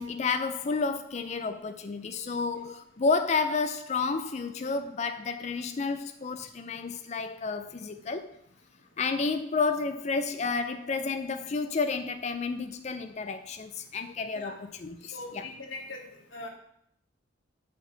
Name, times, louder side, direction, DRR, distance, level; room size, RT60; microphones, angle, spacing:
voice 1, 0.0-8.4 9.0-15.4, left 4 dB, 35° left, 0.4 m, -31 dB
voice 2, 15.1-16.0 16.3-16.5, left 2 dB, 80° left, 1.6 m, -40 dB
7.1 x 4.6 x 5.6 m
head